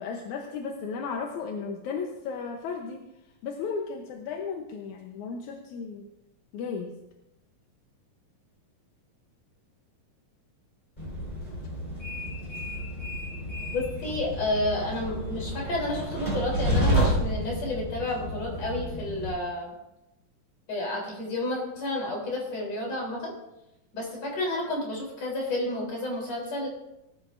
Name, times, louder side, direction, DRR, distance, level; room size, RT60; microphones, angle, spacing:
voice 1, 0.0-3.1 3.4-6.1 6.5-7.0, left 5 dB, 70° left, 2 dB, 2.1 m, -34 dB
Train, 11.0-19.3, equal, 10° left, 4.9 m, -30 dB
voice 2, 13.7-19.7 20.7-23.3 23.9-26.7, left 2 dB, 50° left, -2 dB, 4.7 m, -31 dB
19.5 x 12.5 x 2.6 m, 0.91 s
omnidirectional pair, 4.0 m